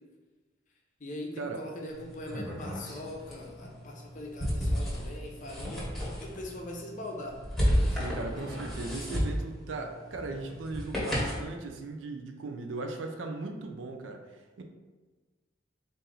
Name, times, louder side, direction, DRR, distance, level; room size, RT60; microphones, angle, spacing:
voice 1, 1.0-5.9 6.2-7.4 8.3-8.5, left 1 dB, 45° left, 0 dB, 0.6 m, -41 dB
sound 1, 1.9-11.5, equal, ahead, 1.0 m, -33 dB
voice 2, 7.9-14.2 14.6-14.7, right 3 dB, 85° right, 4 dB, 0.5 m, -38 dB
4.1 x 2.6 x 3.8 m, 1.3 s
head